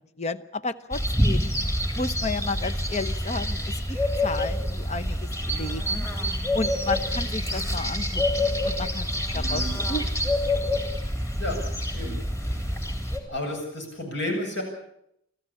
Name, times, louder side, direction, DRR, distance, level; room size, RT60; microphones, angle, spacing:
voice 1, 0.2-1.5 1.9-4.0 4.2-6.0 6.5-9.6 9.9-10.0, left 3 dB, 35° left, 13 dB, 0.9 m, -32 dB
sound 1, 0.9-13.2, left 1 dB, 15° left, 3.4 m, -27 dB
voice 2, 9.3-9.7 11.4-11.6 11.9-12.8 13.3-14.6, left 1 dB, 60° left, 3 dB, 7.8 m, -32 dB
25.5 x 14.5 x 8.6 m, 0.74 s
head